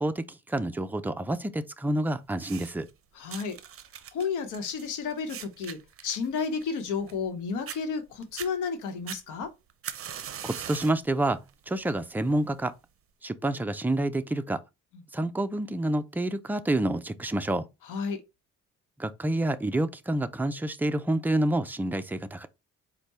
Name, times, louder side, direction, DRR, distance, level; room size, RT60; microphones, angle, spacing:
voice 1, 0.0-2.9 10.4-12.7 13.2-14.6 15.1-17.7 19.0-22.5, right 1 dB, 5° right, 0.4 m, -28 dB
sound 1, 2.3-2.9 3.3-7.3 7.7-7.8 8.2-8.5 9.1-11.0 11.5-11.8 12.6-12.7, right 9 dB, 50° right, 0.6 m, -41 dB
voice 2, 3.2-3.6 4.1-9.5 17.9-18.2, left 5 dB, 85° left, 1.0 m, -32 dB
4.6 x 2.2 x 4.0 m
cardioid pair, 90°, 30 cm